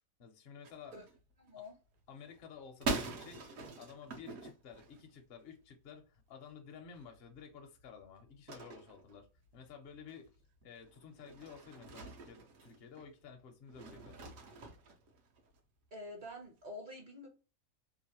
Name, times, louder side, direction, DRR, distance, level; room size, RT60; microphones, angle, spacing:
voice 1, 0.2-1.0 1.6-1.7 2.1-9.3 9.5-10.3 10.6-14.4, left 6 dB, 55° left, 0.7 m, -53 dB
sound 1, 0.6-1.7 2.0-5.6 6.0-6.2 6.5-6.6 6.8-13.1 13.7-15.6, right 3 dB, 70° right, 1.1 m, -44 dB
voice 2, 1.4-1.7 15.9-17.3, left 1 dB, 40° right, 0.8 m, -47 dB
3.0 x 2.4 x 2.8 m
omnidirectional pair, 1.5 m